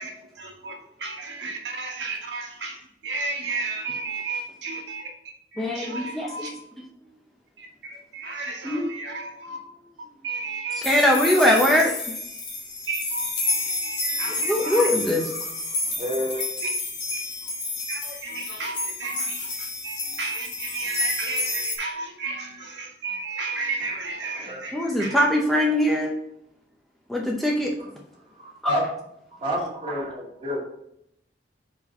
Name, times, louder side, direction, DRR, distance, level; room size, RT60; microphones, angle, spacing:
voice 1, 0.0-5.1 5.5-6.5 7.6-9.6 10.2-11.6 12.9-14.9 16.4-16.7 17.1-17.3 17.9-25.2, right 3 dB, 80° right, 1.3 m, -33 dB
voice 2, 5.6-6.3 8.6-8.9 10.9-11.9 14.4-15.2 24.7-26.1 27.1-27.7 28.6-28.7, left 1 dB, ahead, 0.6 m, -21 dB
sound 1, 10.8-21.8, left 2 dB, 70° left, 1.3 m, -30 dB
voice 3, 15.3-16.5 24.4-24.6 27.8-27.9 28.4-28.9 29.4-30.6, equal, 30° right, 2.0 m, -29 dB
4.8 x 4.1 x 5.4 m
head